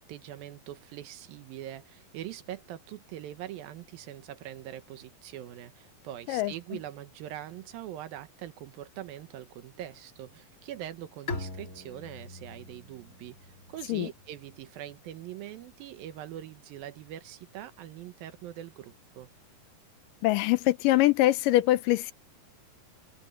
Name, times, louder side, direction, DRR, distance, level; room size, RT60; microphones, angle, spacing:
voice 1, 0.0-19.3, right 12 dB, 80° right, 2.8 m, -43 dB
Bowed string instrument, 11.3-14.8, left 2 dB, 25° left, 2.8 m, -42 dB
voice 2, 20.2-22.1, left 16 dB, 80° left, 2.1 m, -23 dB
omnidirectional pair, 4.2 m